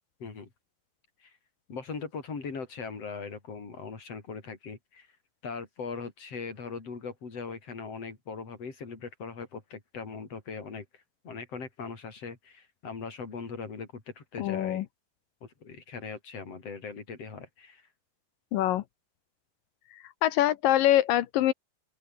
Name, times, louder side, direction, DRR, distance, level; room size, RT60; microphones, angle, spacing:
voice 1, 1.7-5.1 5.4-14.8 15.4-17.9, left 5 dB, 35° left, 5.3 m, -40 dB
voice 2, 14.4-14.9 18.5-18.8 19.9-21.5, left 13 dB, 70° left, 2.2 m, -24 dB
open air
omnidirectional pair, 4.8 m